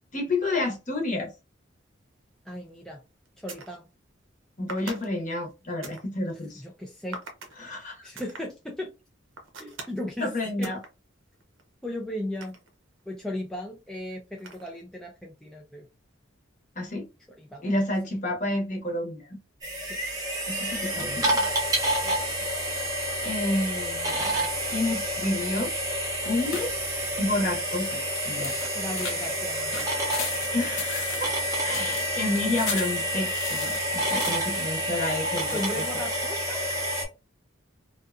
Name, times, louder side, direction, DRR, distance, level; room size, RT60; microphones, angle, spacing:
voice 1, 0.1-1.3 4.6-6.6 7.6-8.0 10.2-10.8 16.8-17.1 17.6-19.4 20.5-21.4 23.2-24.1 24.7-25.7 26.2-26.8 27.2-28.5 30.5-31.3 31.6-35.8, left 2 dB, 40° left, 0.9 m, -30 dB
voice 2, 2.5-3.0 3.4-3.8 6.5-7.2 8.0-8.9 9.6-10.3 10.6-10.7 11.8-12.6 13.1-15.9 17.4-17.7 19.9-20.0 21.4-21.5 22.0-22.2 28.7-29.9 31.8-31.9 35.5-36.6, left 1 dB, 5° left, 0.3 m, -36 dB
sound 1, 2.5-2.7 3.2-3.8 4.7-6.1 7.1-7.5 8.2-8.4 9.3-10.0 10.6-10.9 11.3-13.1 14.4-14.8, right 3 dB, 80° right, 0.7 m, -42 dB
sound 2, 19.6-37.1, right 1 dB, 20° right, 0.7 m, -29 dB
sound 3, 26.5-35.6, left 5 dB, 75° left, 0.7 m, -39 dB
2.6 x 2.3 x 2.3 m
head